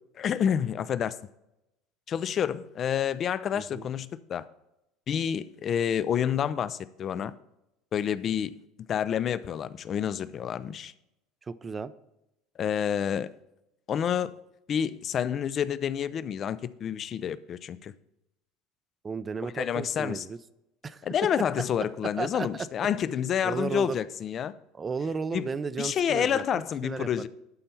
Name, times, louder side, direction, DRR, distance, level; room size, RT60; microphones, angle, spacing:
voice 1, 0.2-1.2 2.1-4.4 5.1-7.3 7.9-8.6 8.9-10.9 12.6-13.3 13.9-14.3 14.7-17.9 19.4-20.3 21.0-24.5 25.3-25.5 25.8-27.3, left 8 dB, 45° left, 0.5 m, -29 dB
voice 2, 3.5-3.9 11.5-11.9 19.0-20.4 20.8-21.1 22.2-22.7 23.4-24.0 24.8-27.3, right 5 dB, 25° right, 0.5 m, -34 dB
11.5 x 4.4 x 5.5 m
hypercardioid pair, 85°, 0 cm